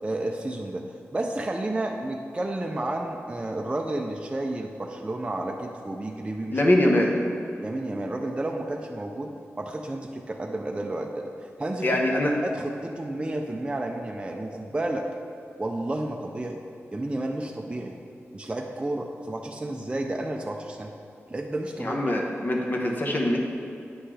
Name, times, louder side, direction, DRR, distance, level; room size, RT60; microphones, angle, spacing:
voice 1, 0.0-6.6 7.6-12.0 12.4-15.1 15.6-16.6 16.9-18.0 18.3-20.9 21.3-22.1, right 1 dB, 20° right, 1 dB, 0.4 m, -31 dB
voice 2, 6.5-7.1 11.8-12.3 21.8-23.4, left 1 dB, 40° left, 0 dB, 1.0 m, -23 dB
9.4 x 5.7 x 3.3 m, 2.6 s
wide cardioid pair, 110°, 5 cm